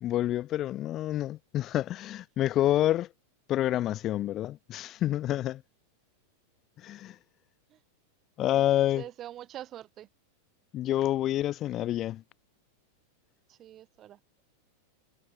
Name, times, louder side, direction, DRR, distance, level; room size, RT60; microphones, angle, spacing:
voice 1, 0.0-3.1 3.5-5.6 6.8-7.2 8.4-9.0 10.7-12.2, left 13 dB, 30° left, 0.4 m, -28 dB
voice 2, 9.0-10.1 13.5-14.2, right 12 dB, 30° right, 2.8 m, -44 dB
figure-of-eight pair, 90°, 0 cm